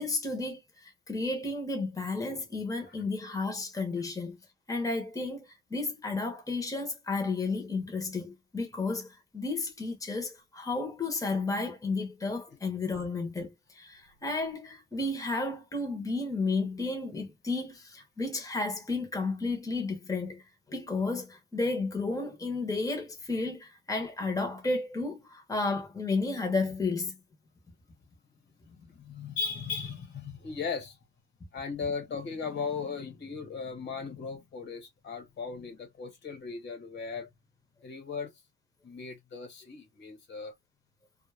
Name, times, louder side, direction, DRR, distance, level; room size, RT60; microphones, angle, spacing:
voice 1, 0.0-4.4 4.7-20.4 20.7-27.1, left 3 dB, 15° left, 1.0 m, -32 dB
voice 2, 28.7-31.0 31.5-37.3 37.8-38.3 38.8-40.5, left 5 dB, 65° left, 1.4 m, -37 dB
2.4 x 2.1 x 3.3 m
cardioid pair, 90°, 20 cm